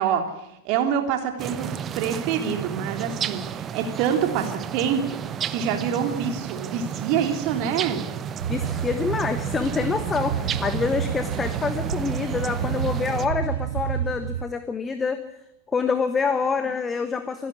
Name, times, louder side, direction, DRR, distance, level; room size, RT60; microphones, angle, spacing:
voice 1, 0.0-5.2 5.5-8.0, right 8 dB, 45° right, 5 dB, 3.4 m, -26 dB
sound 1, 1.4-13.3, right 8 dB, 25° right, 1.0 m, -32 dB
sound 2, 8.4-14.4, right 9 dB, 60° right, 1.1 m, -30 dB
voice 2, 8.5-15.2 15.7-17.5, left 5 dB, 15° left, 10 dB, 1.3 m, -26 dB
25.0 x 11.5 x 9.8 m, 0.83 s
figure-of-eight pair, 90°, 0 cm